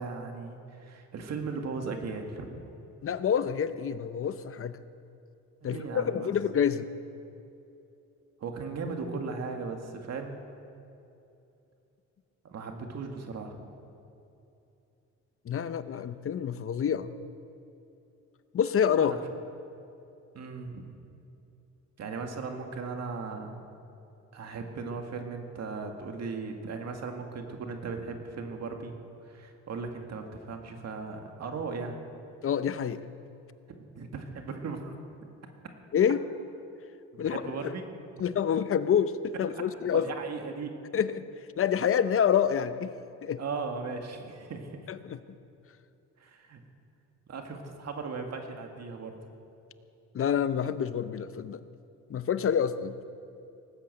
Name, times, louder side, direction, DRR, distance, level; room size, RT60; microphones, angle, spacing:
voice 1, 0.0-2.6 5.7-6.3 8.4-10.4 12.4-13.7 19.0-19.2 20.3-20.9 22.0-23.6 24.3-28.9 29.2-32.0 33.7-34.9 37.1-37.9 39.8-40.7 43.4-44.8 46.2-46.6 47.3-49.2, right 4 dB, 60° right, 4 dB, 2.0 m, -37 dB
voice 2, 3.0-4.8 5.6-6.9 15.5-17.1 18.5-19.2 32.4-33.0 35.9-36.2 37.2-37.7 38.2-40.1 40.9-41.3 41.6-42.9 43.2-43.4 44.9-45.2 50.1-51.6 52.1-53.0, left 8 dB, 45° left, 13 dB, 0.7 m, -27 dB
18.5 x 8.5 x 7.9 m, 2.8 s
cardioid pair, 90°, 30 cm